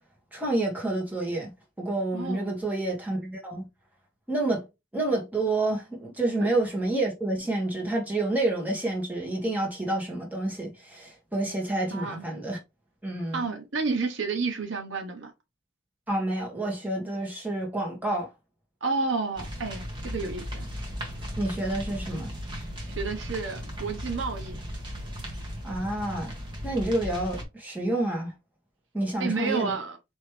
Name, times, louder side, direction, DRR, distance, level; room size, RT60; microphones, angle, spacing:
voice 1, 0.3-1.5 1.8-3.7 4.3-4.6 4.9-12.6 13.0-13.5 16.1-18.3 21.4-22.3 25.6-26.3 26.6-28.3 28.9-29.7, right 2 dB, 10° right, 1.5 m, -29 dB
voice 2, 2.1-2.5 6.4-6.5 11.9-12.3 13.3-15.3 18.8-20.7 22.9-24.6 29.2-30.0, right 4 dB, 65° right, 1.1 m, -30 dB
sound 1, 19.4-27.4, equal, 25° right, 1.4 m, -36 dB
4.5 x 3.2 x 3.3 m
head